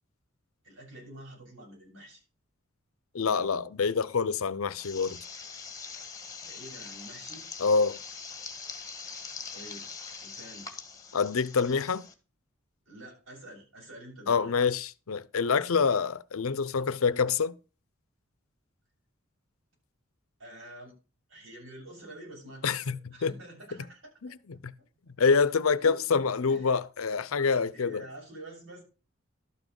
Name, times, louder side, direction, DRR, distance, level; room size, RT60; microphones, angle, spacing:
voice 1, 0.6-2.2 6.4-7.5 9.5-9.9 10.2-10.7 12.9-14.7 20.4-20.9 21.3-24.4 25.8-26.0 26.5-26.8 27.7-28.8, right 1 dB, 75° right, 7.4 m, -47 dB
voice 2, 3.1-5.2 7.6-8.0 11.1-12.1 14.3-17.5 22.6-23.3 24.2-24.7 25.2-28.0, left 5 dB, 85° left, 0.6 m, -26 dB
sound 1, 4.8-12.1, left 5 dB, 15° left, 1.4 m, -43 dB
12.5 x 6.2 x 5.3 m
head